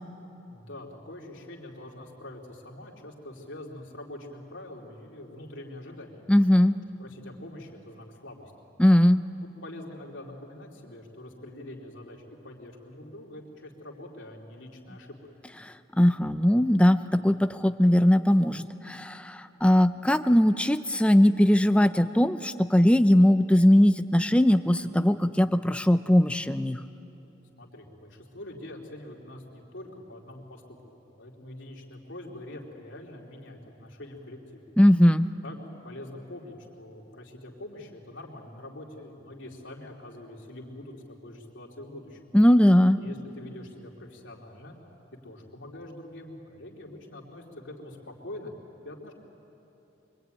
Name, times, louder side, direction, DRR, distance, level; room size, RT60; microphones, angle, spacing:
voice 1, 0.5-6.3 7.0-8.5 9.4-15.1 27.6-34.7 35.4-35.6 35.8-42.3 43.0-44.8 45.2-48.5 48.8-49.1, left 1 dB, 65° left, -1 dB, 3.2 m, -44 dB
voice 2, 6.3-6.7 8.8-9.2 15.6-26.8 34.8-35.3 42.3-43.0, equal, 5° left, 10 dB, 0.5 m, -20 dB
24.0 x 23.5 x 9.2 m, 3.0 s
head